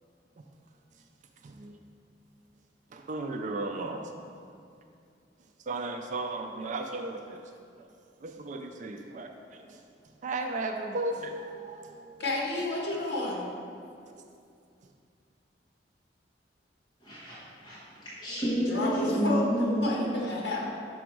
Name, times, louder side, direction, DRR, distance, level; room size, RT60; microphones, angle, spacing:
voice 1, 1.4-1.8 2.9-4.1 5.7-7.4 7.8-7.9 8.2-9.8 10.2-12.2 13.8-14.2, right 2 dB, 45° right, 4 dB, 0.4 m, -35 dB
voice 2, 12.2-13.5 18.6-20.7, left 1 dB, 65° left, -3 dB, 1.5 m, -31 dB
voice 3, 17.0-19.9, equal, 25° left, -10 dB, 1.3 m, -30 dB
6.1 x 5.0 x 4.6 m, 2.4 s
head